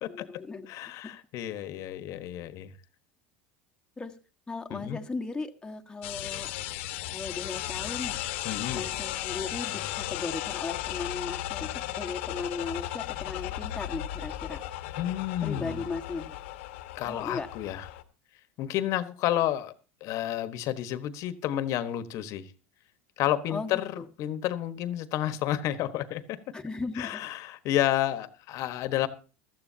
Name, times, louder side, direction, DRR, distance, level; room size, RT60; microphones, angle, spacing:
voice 1, 0.1-0.7 1.0-1.1 4.0-4.2 4.5-6.5 7.1-8.2 8.7-14.6 15.4-16.4 17.0-17.5 23.5-24.0 26.5-27.2, left 4 dB, 10° left, 1.5 m, -37 dB
voice 2, 0.7-2.7 4.7-5.0 8.4-8.8 15.0-15.9 16.9-17.9 18.6-19.7 20.0-22.5 23.2-26.4 27.0-29.1, left 12 dB, 55° left, 1.3 m, -30 dB
sound 1, 6.0-18.0, left 14 dB, 80° left, 1.3 m, -35 dB
16.0 x 13.5 x 2.8 m
supercardioid pair, 100°, 6 cm